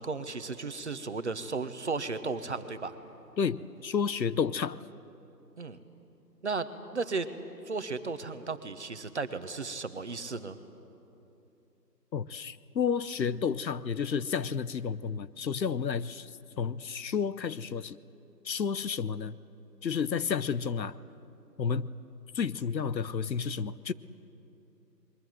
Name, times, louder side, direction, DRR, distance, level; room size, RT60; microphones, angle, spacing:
voice 1, 0.0-2.9 5.6-5.8 6.4-7.3 7.7-10.6, right 4 dB, 45° right, 10 dB, 1.2 m, -35 dB
voice 2, 3.4-4.8 12.1-16.3 16.6-18.0 18.4-19.4 19.8-21.0 21.6-21.9 22.3-23.9, left 6 dB, 85° left, 16 dB, 0.9 m, -31 dB
28.5 x 22.0 x 7.8 m, 2.9 s
figure-of-eight pair, 170°, 50 cm